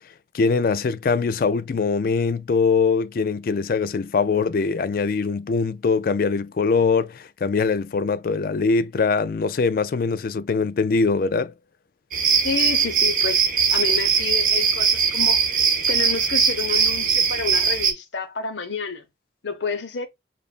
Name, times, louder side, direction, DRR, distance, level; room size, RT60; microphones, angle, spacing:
voice 1, 0.3-11.5, left 4 dB, 50° left, 0.3 m, -22 dB
sound 1, 12.1-17.9, right 6 dB, 45° right, 0.8 m, -20 dB
voice 2, 12.4-19.0 19.4-20.1, left 4 dB, 75° left, 0.9 m, -30 dB
6.9 x 2.5 x 2.4 m
head